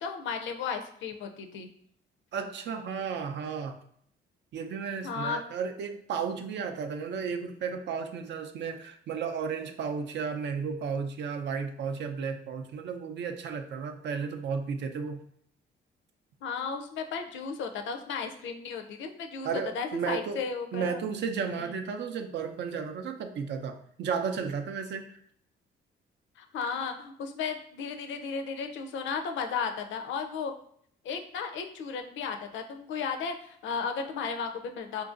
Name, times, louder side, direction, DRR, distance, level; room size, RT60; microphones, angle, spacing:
voice 1, 0.0-1.7 5.0-5.4 16.4-19.5 19.7-21.0 21.6-21.7 26.4-30.5 31.0-35.0, left 5 dB, 75° left, 6 dB, 0.5 m, -34 dB
voice 2, 2.3-3.8 4.5-15.2 19.4-25.2, right 6 dB, 60° right, 6 dB, 0.5 m, -33 dB
3.8 x 2.5 x 2.4 m, 0.63 s
cardioid pair, 90°, 20 cm